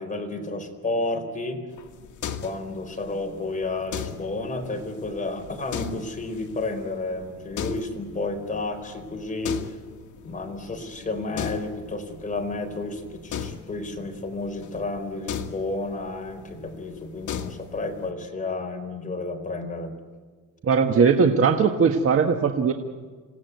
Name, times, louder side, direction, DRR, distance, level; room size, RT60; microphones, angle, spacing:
voice 1, 0.0-1.6 2.4-9.6 10.2-19.9, left 2 dB, 20° left, 5 dB, 4.2 m, -31 dB
sound 1, 1.7-18.1, left 7 dB, 55° left, 2.0 m, -39 dB
voice 2, 20.6-22.7, right 5 dB, 40° right, 5 dB, 1.5 m, -19 dB
27.5 x 17.5 x 9.4 m, 1.5 s
cardioid pair, 135°, 35 cm